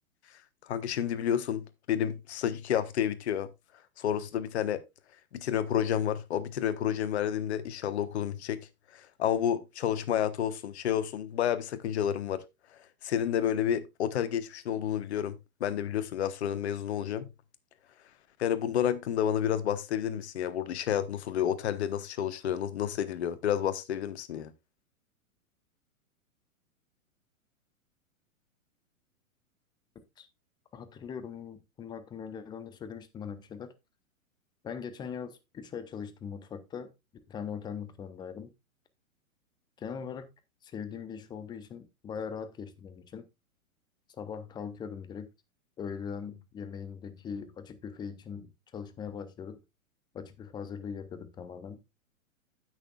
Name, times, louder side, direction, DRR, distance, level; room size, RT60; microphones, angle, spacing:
voice 1, 0.6-1.6 1.9-3.5 4.0-4.8 5.3-8.6 8.9-12.4 13.0-17.3 18.4-24.5, left 9 dB, 50° left, 1.2 m, -30 dB
voice 2, 30.7-33.7 34.6-36.9 37.3-38.5 39.8-40.3 40.6-43.3 44.2-45.3 45.8-49.6 50.1-51.8, left 6 dB, 10° left, 0.6 m, -40 dB
15.5 x 6.2 x 2.3 m
figure-of-eight pair, 110°, 42 cm